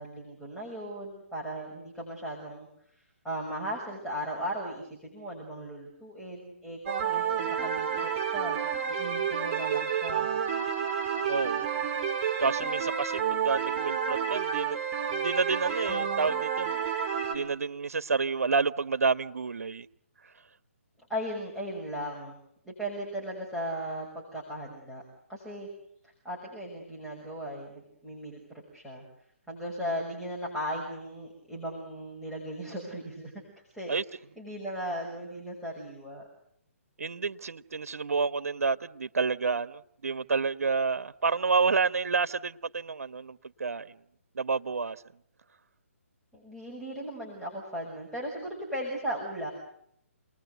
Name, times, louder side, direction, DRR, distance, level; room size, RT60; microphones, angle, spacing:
voice 1, 0.0-6.8 7.1-8.6 8.9-10.3 21.1-22.4 22.6-25.0 25.3-25.7 26.2-28.4 28.7-29.0 29.5-33.3 33.7-33.9 34.4-36.3 46.3-49.5, equal, ahead, 6.2 m, -37 dB
sound 1, 6.9-17.4, right 7 dB, 25° right, 5.3 m, -30 dB
voice 2, 11.3-11.7 12.4-14.8 15.1-16.7 17.3-19.9 33.9-34.0 37.0-43.9 44.3-45.0, right 4 dB, 80° right, 1.2 m, -29 dB
29.0 x 20.5 x 8.1 m
hypercardioid pair, 150°, 8 cm